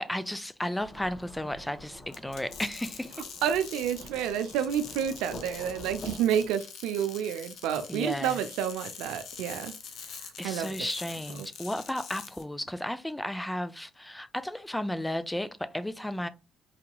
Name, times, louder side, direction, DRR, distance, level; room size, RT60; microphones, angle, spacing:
voice 1, 0.0-3.2 7.9-8.4 10.4-16.3, left 1 dB, 10° left, 0.5 m, -34 dB
Thunderstorm / Rain, 0.8-6.5, left 1 dB, 40° left, 1.4 m, -46 dB
sound 1, 2.1-12.4, left 6 dB, 70° left, 0.7 m, -44 dB
voice 2, 3.4-9.7 10.4-10.7, right 9 dB, 80° right, 0.4 m, -29 dB
4.9 x 2.8 x 2.2 m
supercardioid pair, 60°, 0 cm